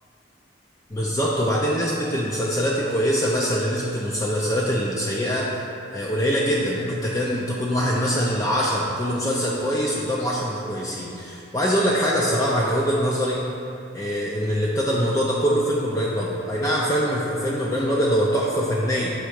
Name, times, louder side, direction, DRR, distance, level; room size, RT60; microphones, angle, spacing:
voice 1, 0.9-5.5 5.9-13.4 13.9-19.1, equal, 15° left, -4 dB, 0.4 m, -23 dB
6.3 x 3.3 x 4.7 m, 2.6 s
head